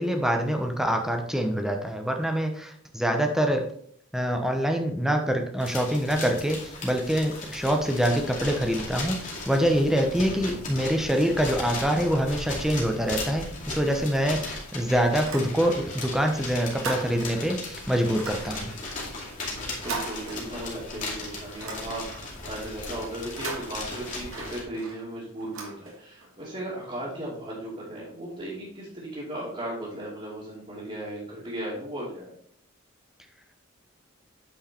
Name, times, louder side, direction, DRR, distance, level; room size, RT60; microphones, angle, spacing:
voice 1, 0.0-3.7 4.1-18.7, equal, ahead, 4 dB, 0.9 m, -25 dB
sound 1, 5.6-24.6, left 2 dB, 35° left, 2.4 m, -37 dB
sound 2, 15.2-16.1 16.4-17.6 18.1-20.9 21.3-22.4 23.2-26.3, right 4 dB, 80° right, 1.9 m, -39 dB
voice 2, 19.8-32.3, right 1 dB, 35° right, -8 dB, 2.4 m, -36 dB
8.9 x 4.7 x 4.4 m, 0.63 s
head